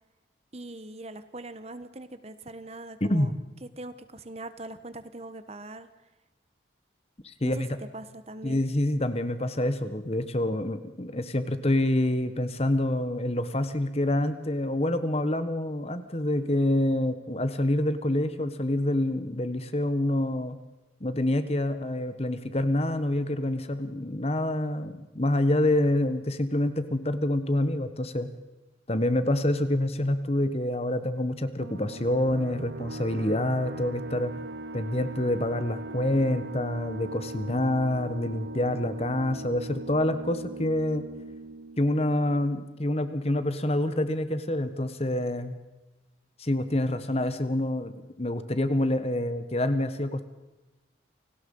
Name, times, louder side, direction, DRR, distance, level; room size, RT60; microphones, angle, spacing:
voice 1, 0.5-3.3 3.6-5.9 7.4-8.6, right 2 dB, 35° right, 11 dB, 1.4 m, -41 dB
voice 2, 3.0-3.3 7.2-7.7 8.4-20.6 21.0-28.3 28.9-34.3 34.7-41.1 41.8-45.6 46.4-50.3, left 1 dB, 35° left, 11 dB, 1.4 m, -27 dB
sound 1, 31.6-42.9, right 2 dB, 60° right, 0.8 m, -40 dB
29.0 x 18.5 x 5.6 m, 1.1 s
head